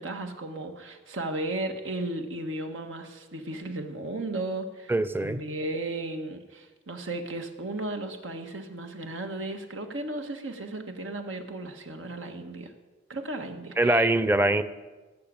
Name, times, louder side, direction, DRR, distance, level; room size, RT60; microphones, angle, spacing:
voice 1, 0.0-4.9 5.2-12.7 13.1-14.1, right 2 dB, 85° right, 5 dB, 1.6 m, -35 dB
voice 2, 4.9-5.4 13.8-14.6, right 1 dB, 10° right, 12 dB, 0.6 m, -23 dB
17.5 x 6.8 x 8.7 m, 1.2 s
head